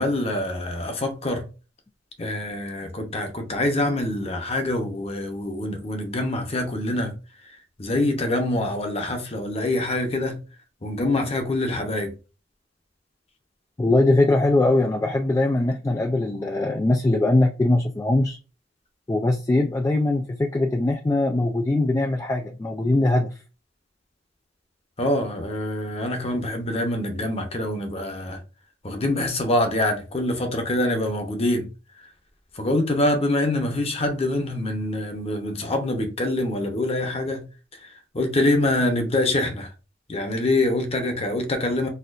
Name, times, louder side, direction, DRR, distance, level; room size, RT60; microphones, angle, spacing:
voice 1, 0.0-1.5 2.2-7.2 7.8-10.4 10.8-12.1 25.0-28.4 28.8-31.7 32.5-37.4 37.7-39.7 40.1-41.9, left 1 dB, 35° left, 0.8 m, -25 dB
voice 2, 13.8-18.4 19.1-23.3, left 2 dB, 15° left, 0.3 m, -21 dB
4.2 x 2.4 x 2.5 m
head